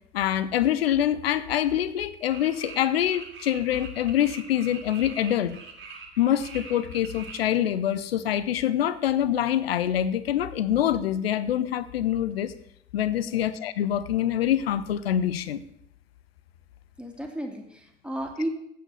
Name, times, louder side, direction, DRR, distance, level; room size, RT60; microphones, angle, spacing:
voice 1, 0.1-5.6 6.2-12.5 12.9-15.6, left 11 dB, 80° left, 13 dB, 0.5 m, -25 dB
sound 1, 2.3-7.4, right 5 dB, 45° right, 2.1 m, -44 dB
voice 2, 17.0-18.5, right 1 dB, 5° right, 3 dB, 2.0 m, -33 dB
8.3 x 5.8 x 7.8 m, 0.76 s
figure-of-eight pair, 45°, 30 cm